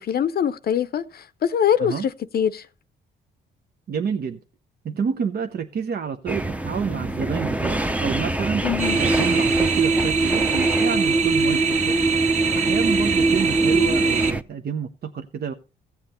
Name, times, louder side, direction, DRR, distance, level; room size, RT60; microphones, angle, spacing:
voice 1, 0.0-2.6 8.6-9.0, left 9 dB, 50° left, 0.6 m, -23 dB
voice 2, 3.9-4.4 4.8-8.6 9.0-12.0 12.4-15.5, right 7 dB, 50° right, 0.8 m, -28 dB
sound 1, 6.3-14.4, right 1 dB, 5° right, 0.7 m, -28 dB
sound 2, 8.8-14.3, right 4 dB, 35° right, 1.7 m, -21 dB
15.5 x 7.4 x 4.2 m
cardioid pair, 90°, 20 cm